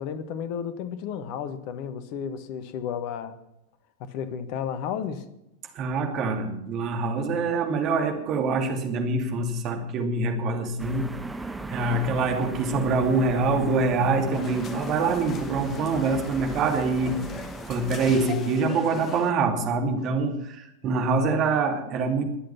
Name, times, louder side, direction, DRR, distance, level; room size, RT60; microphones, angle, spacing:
voice 1, 0.0-3.3 4.0-5.2, left 8 dB, 45° left, 1.4 m, -32 dB
voice 2, 5.7-11.1 11.4-22.2, right 3 dB, 35° right, 2.7 m, -25 dB
sound 1, 10.8-18.3, right 2 dB, 5° right, 1.2 m, -37 dB
sound 2, 14.3-19.3, left 7 dB, 30° left, 1.2 m, -41 dB
22.0 x 7.9 x 5.9 m
figure-of-eight pair, 90°, 0 cm